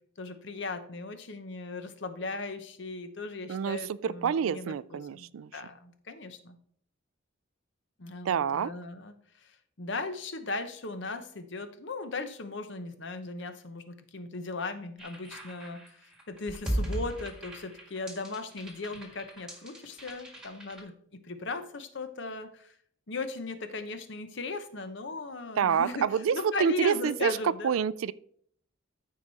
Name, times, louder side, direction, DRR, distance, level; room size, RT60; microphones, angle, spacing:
voice 1, 0.2-6.6 8.0-22.7 23.1-27.7, left 3 dB, 60° left, 0.9 m, -38 dB
voice 2, 3.5-5.5 8.2-8.7 25.6-28.1, right 7 dB, 85° right, 0.4 m, -28 dB
sound 1, 15.0-20.8, right 1 dB, 5° right, 1.7 m, -38 dB
13.5 x 4.8 x 4.1 m
head